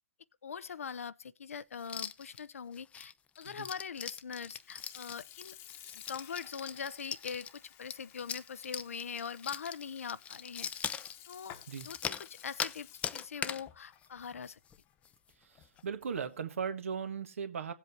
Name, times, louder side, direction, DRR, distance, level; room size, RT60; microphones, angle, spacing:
voice 1, 0.4-5.6 5.9-7.5 7.8-10.7 11.3-11.5 11.8-14.6, left 6 dB, 80° left, 0.6 m, -42 dB
sound 1, 1.8-2.4 2.7-12.8 13.0-13.6 14.0-14.1 14.4-14.8 15.0-15.1 15.6-15.8, left 7 dB, 15° left, 0.5 m, -41 dB
Sink (filling or washing) / Fill (with liquid), 4.4-16.0, left 11 dB, 35° left, 1.1 m, -55 dB
voice 2, 15.8-17.7, right 6 dB, 75° right, 1.4 m, -37 dB
17.5 x 7.8 x 2.8 m
hypercardioid pair, 120°, 7 cm